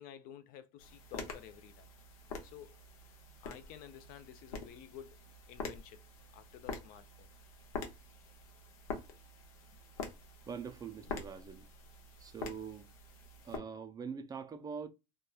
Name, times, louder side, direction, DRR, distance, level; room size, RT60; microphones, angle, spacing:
voice 1, 0.0-1.9 2.4-2.8 3.4-5.2 5.5-6.0 6.3-7.3, left 10 dB, 55° left, 0.4 m, -52 dB
sound 1, 0.8-13.6, left 4 dB, 90° left, 0.8 m, -46 dB
voice 2, 10.5-11.7 12.2-12.9 13.4-14.9, right 6 dB, 20° right, 0.3 m, -43 dB
2.9 x 2.2 x 2.2 m
supercardioid pair, 120°, 18 cm